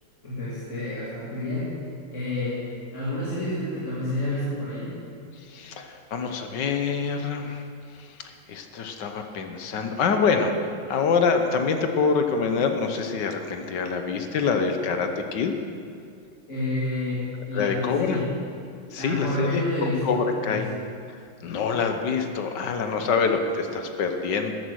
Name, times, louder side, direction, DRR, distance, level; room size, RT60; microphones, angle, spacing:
voice 1, 0.2-1.8 2.1-2.6 2.9-4.9 16.5-18.3 19.0-20.7 23.0-23.2, left 1 dB, 40° left, -9 dB, 3.1 m, -29 dB
voice 2, 5.5-7.6 8.0-10.5 10.9-15.5 17.5-18.2 18.9-20.6 21.4-24.5, left 5 dB, 65° left, 6 dB, 1.5 m, -25 dB
13.5 x 10.5 x 6.3 m, 2.4 s
omnidirectional pair, 2.1 m